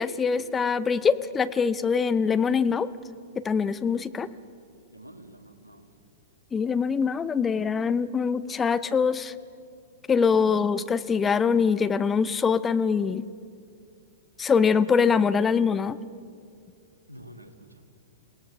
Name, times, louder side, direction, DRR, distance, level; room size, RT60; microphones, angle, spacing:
voice 1, 0.0-2.9 3.4-4.3 6.5-9.3 10.1-13.2 14.4-16.0, left 6 dB, 15° left, 14 dB, 0.7 m, -23 dB
voice 2, 4.9-5.9 17.1-17.8, right 1 dB, 85° right, 6 dB, 1.8 m, -48 dB
28.0 x 17.5 x 5.9 m, 2.4 s
figure-of-eight pair, 105°, 0 cm